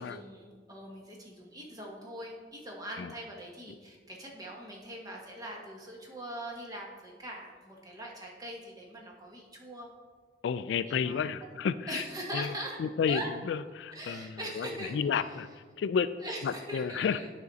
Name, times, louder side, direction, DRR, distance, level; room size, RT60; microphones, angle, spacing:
voice 1, 0.0-9.9 10.9-11.6 11.9-12.8 13.1-13.3 13.9-15.4 16.2-17.3, right 1 dB, 20° right, -1 dB, 1.2 m, -42 dB
voice 2, 10.4-12.0 12.3-12.5 12.8-13.2 13.5-16.1 16.4-17.2, left 6 dB, 70° left, 13 dB, 0.3 m, -31 dB
9.7 x 5.0 x 4.0 m, 1.5 s
head